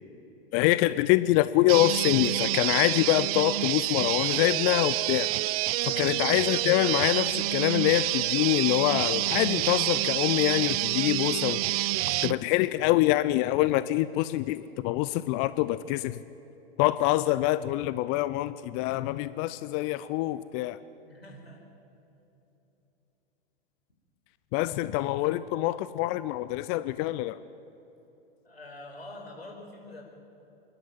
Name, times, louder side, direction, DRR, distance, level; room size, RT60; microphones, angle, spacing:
voice 1, 0.5-5.3 5.9-11.9 12.2-16.1 16.8-20.8 24.5-27.4, left 16 dB, 35° left, 15 dB, 0.5 m, -25 dB
sound 1, 1.7-12.4, right 18 dB, 40° right, 0.5 m, -28 dB
voice 2, 21.0-21.7 28.4-30.0, left 2 dB, 85° left, 0 dB, 4.8 m, -45 dB
27.5 x 12.0 x 9.4 m, 3.0 s
figure-of-eight pair, 100°, 30 cm